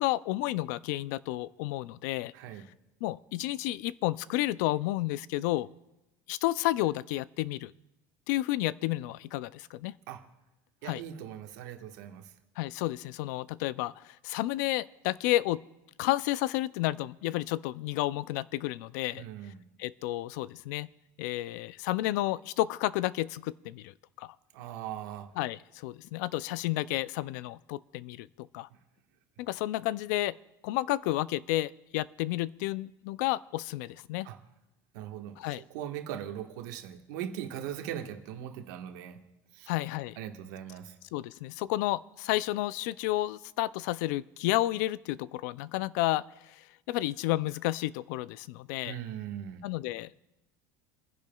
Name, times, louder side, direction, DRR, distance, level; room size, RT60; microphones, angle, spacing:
voice 1, 0.0-2.3 3.0-5.7 6.3-7.7 8.3-9.9 10.8-11.0 12.6-15.6 16.0-19.2 19.8-20.9 21.2-24.4 25.4-28.7 29.4-30.4 30.6-34.3 35.4-35.6 39.7-40.2 41.1-48.9 49.6-50.2, left 16 dB, 75° left, 18 dB, 0.4 m, -31 dB
voice 2, 2.3-2.7 10.1-10.2 10.8-12.3 19.1-19.6 24.5-25.3 34.2-34.4 34.9-39.2 39.5-39.7 40.2-40.9 48.8-49.6, right 10 dB, 80° right, 4 dB, 1.4 m, -40 dB
30.0 x 10.5 x 2.3 m, 0.96 s
cardioid pair, 155°, 10 cm